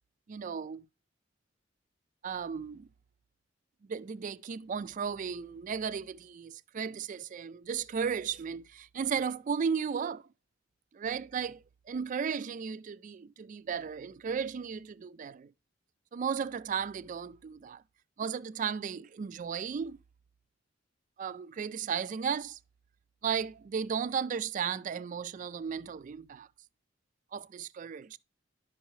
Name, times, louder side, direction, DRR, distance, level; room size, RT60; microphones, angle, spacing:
voice 1, 0.3-0.8 2.2-2.9 3.9-10.2 10.9-15.5 16.1-17.8 18.2-20.0 21.2-22.6 23.2-26.5 27.3-28.2, right 6 dB, 40° right, 0.3 m, -35 dB
11.0 x 5.5 x 3.1 m
head